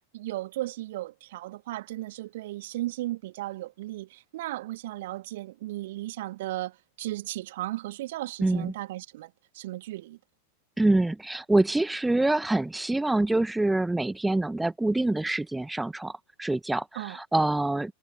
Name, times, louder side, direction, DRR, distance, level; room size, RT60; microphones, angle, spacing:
voice 1, 0.1-10.2 17.0-17.2, right 16 dB, 55° right, 1.8 m, -35 dB
voice 2, 8.4-8.7 10.8-17.9, right 2 dB, 5° right, 1.4 m, -25 dB
figure-of-eight pair, 90°, 0 cm